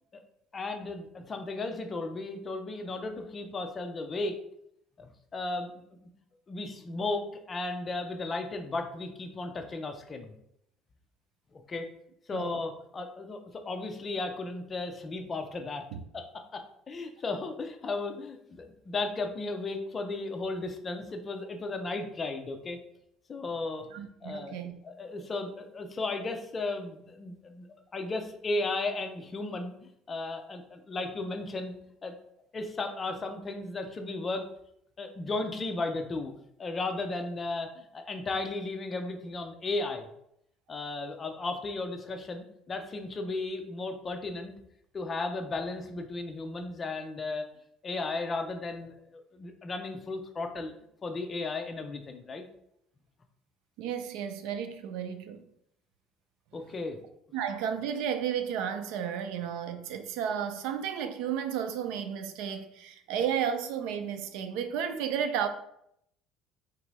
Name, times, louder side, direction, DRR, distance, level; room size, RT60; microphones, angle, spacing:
voice 1, 0.5-4.4 5.0-5.8 6.5-10.3 11.5-11.9 12.3-15.9 16.1-16.3 16.5-22.8 23.3-23.9 24.2-24.5 24.8-27.7 27.9-31.7 32.0-32.1 32.5-34.5 35.0-36.3 36.6-40.1 40.7-44.5 44.9-47.5 47.8-50.7 51.0-52.4 56.5-57.0, left 3 dB, 25° left, 6 dB, 0.6 m, -35 dB
voice 2, 23.9-24.8 53.8-55.4 57.3-65.5, right 8 dB, 85° right, 8 dB, 0.5 m, -33 dB
3.9 x 2.7 x 4.7 m, 0.73 s
cardioid pair, 135°, 0 cm